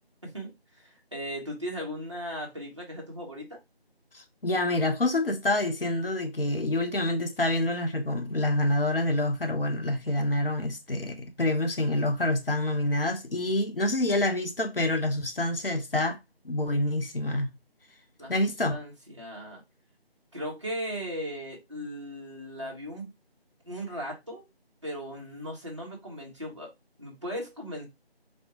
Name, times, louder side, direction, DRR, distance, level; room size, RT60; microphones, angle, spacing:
voice 1, 0.2-3.6 18.2-18.3 18.7-19.6 20.3-23.1 23.6-24.5 24.8-26.7 27.0-27.9, equal, 30° right, 1.0 m, -37 dB
voice 2, 4.1-16.2 16.4-17.5 18.3-18.8, left 1 dB, 60° left, 0.9 m, -27 dB
4.2 x 2.3 x 2.9 m
figure-of-eight pair, 170°, 31 cm